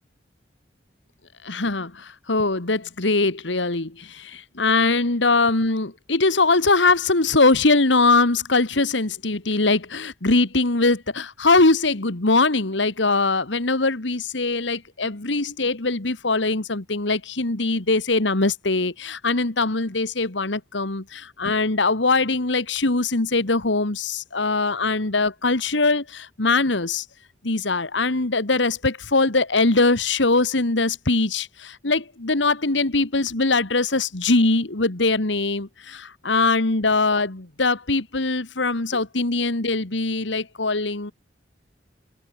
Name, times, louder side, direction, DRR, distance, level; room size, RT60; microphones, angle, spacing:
voice 1, 1.4-27.1 27.4-41.1, left 3 dB, 85° left, 1.9 m, -22 dB
head